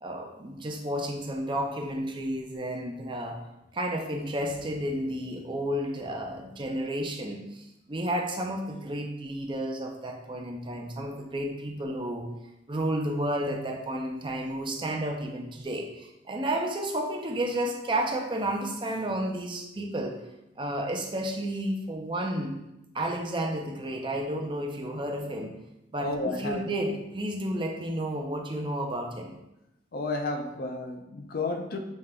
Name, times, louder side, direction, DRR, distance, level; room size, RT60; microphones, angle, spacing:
voice 1, 0.0-3.4 3.7-12.3 12.7-20.1 20.6-22.6 22.9-25.5 25.9-29.3, right 1 dB, 25° right, 2 dB, 0.5 m, -31 dB
voice 2, 26.0-26.7 29.9-31.8, left 2 dB, 55° left, 5 dB, 0.5 m, -32 dB
6.5 x 3.6 x 2.2 m, 0.90 s
head